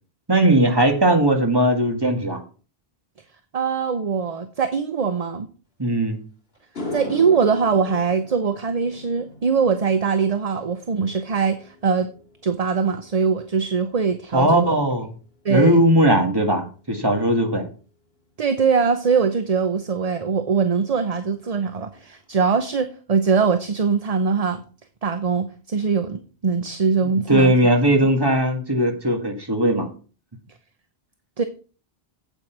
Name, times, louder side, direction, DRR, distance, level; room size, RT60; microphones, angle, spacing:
voice 1, 0.3-2.4 5.8-6.2 14.3-15.1 15.5-17.7 27.3-29.9, right 1 dB, 25° right, 3 dB, 1.8 m, -18 dB
voice 2, 3.5-5.5 6.9-12.1 12.4-14.7 15.4-15.8 18.4-24.6 25.0-27.5 31.4-31.5, right 5 dB, 40° right, 9 dB, 0.8 m, -22 dB
sound 1, 6.0-6.1 6.6-15.1 15.4-15.8 19.4-19.5 21.1-21.2 21.5-21.7 21.9-22.5, left 2 dB, 70° left, 2.6 m, -39 dB
9.0 x 8.3 x 4.6 m, 0.37 s
omnidirectional pair, 1.0 m